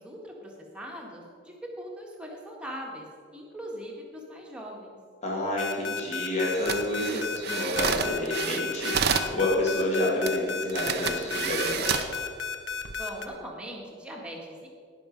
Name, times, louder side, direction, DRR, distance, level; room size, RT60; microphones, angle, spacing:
voice 1, 0.0-3.1 3.3-5.0 13.0-14.7, equal, 5° right, -2 dB, 1.7 m, -40 dB
voice 2, 5.2-12.1, left 1 dB, 30° left, -4 dB, 2.1 m, -29 dB
sound 1, 5.6-13.3, left 5 dB, 60° left, 0.9 m, -33 dB
sound 2, 6.5-9.3 10.3-10.4 10.7-12.2 12.7-12.9, right 7 dB, 50° right, 0.6 m, -29 dB
18.5 x 6.2 x 5.2 m, 2.2 s
head